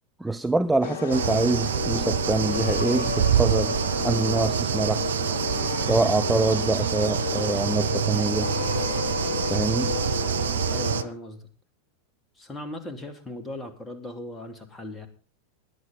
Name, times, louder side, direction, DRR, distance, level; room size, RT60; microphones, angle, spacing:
voice 1, 0.2-3.8 4.0-5.1 5.8-8.5 9.5-9.9, right 2 dB, 5° right, 0.6 m, -25 dB
sound 1, 0.8-11.1, left 6 dB, 55° left, 2.8 m, -31 dB
sound 2, 1.1-11.0, right 10 dB, 65° right, 0.6 m, -27 dB
voice 2, 10.7-11.5 12.4-15.1, left 1 dB, 15° left, 2.8 m, -38 dB
19.0 x 11.0 x 3.7 m
figure-of-eight pair, 90°, 0 cm